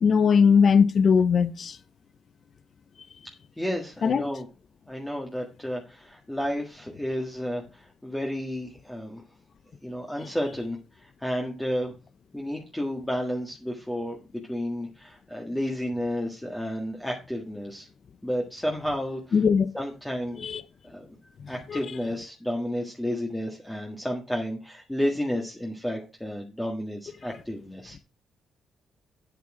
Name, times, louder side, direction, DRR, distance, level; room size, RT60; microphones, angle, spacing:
voice 1, 0.0-1.8 4.0-4.2 19.3-19.7 20.4-20.6 21.7-21.8, left 6 dB, 50° left, 0.7 m, -20 dB
voice 2, 3.6-4.5 4.9-9.2 9.8-11.9 12.3-14.2 14.5-17.9 18.2-19.4 19.7-20.5 20.8-21.1 21.5-28.0, equal, 5° left, 1.6 m, -31 dB
8.6 x 8.0 x 4.9 m
cardioid pair, 90°, 0 cm